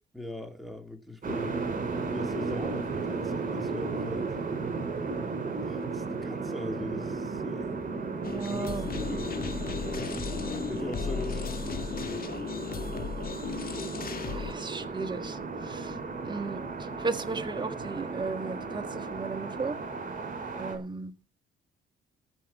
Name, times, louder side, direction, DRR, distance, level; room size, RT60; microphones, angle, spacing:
voice 1, 0.1-1.6 2.1-4.3 5.6-7.8 8.4-9.3 9.9-10.2 10.6-12.2, left 1 dB, ahead, 2.5 m, -40 dB
sound 1, 1.2-20.8, right 4 dB, 40° right, 4.3 m, -35 dB
sound 2, 8.2-14.5, left 6 dB, 45° left, 1.8 m, -35 dB
voice 2, 8.3-8.9 10.3-10.5 14.3-16.6 17.0-19.8 20.6-21.3, right 4 dB, 25° right, 1.6 m, -35 dB
14.5 x 6.0 x 8.0 m
cardioid pair, 90°, 20 cm